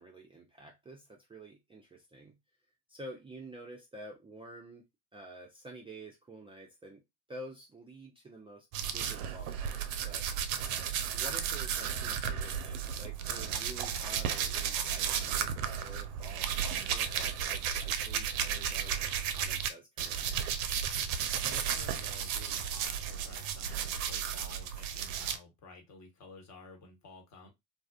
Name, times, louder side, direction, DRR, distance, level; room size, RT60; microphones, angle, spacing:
voice 1, 0.0-2.4 2.9-4.8 5.1-7.0 7.3-10.3 11.0-20.4, right 1 dB, 10° right, 0.5 m, -49 dB
sound 1, 8.7-19.7 20.0-25.4, right 8 dB, 65° right, 0.6 m, -34 dB
voice 2, 10.6-11.0 21.4-27.5, left 3 dB, 35° left, 1.1 m, -53 dB
2.6 x 2.3 x 2.3 m
hypercardioid pair, 75°, 45 cm